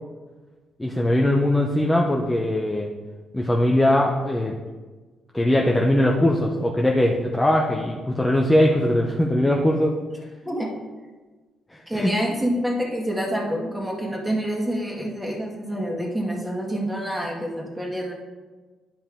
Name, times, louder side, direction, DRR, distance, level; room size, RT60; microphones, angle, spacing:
voice 1, 0.8-2.9 3.3-4.6 5.3-10.0 11.7-12.2, left 1 dB, 10° left, 0 dB, 0.7 m, -20 dB
voice 2, 11.9-18.1, equal, 5° right, -2 dB, 1.9 m, -27 dB
10.5 x 5.4 x 3.6 m, 1.3 s
cardioid pair, 90°, 0 cm